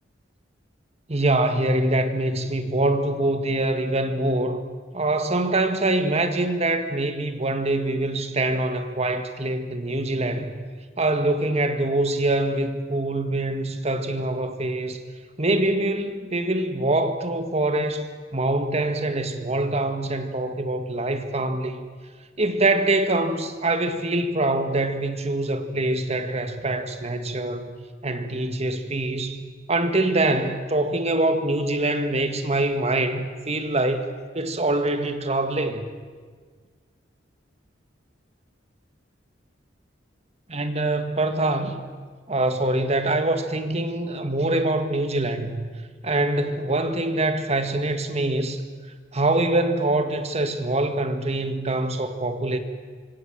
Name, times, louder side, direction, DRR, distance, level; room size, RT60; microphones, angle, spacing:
voice 1, 1.1-4.6 4.9-10.5 11.0-15.0 15.4-21.8 22.4-27.8 28.0-29.4 29.7-34.1 34.3-35.8 40.5-41.8 42.3-45.6 46.0-48.6 49.1-52.6, right 2 dB, 35° right, 1.9 m, -24 dB
26.0 x 25.0 x 7.7 m
head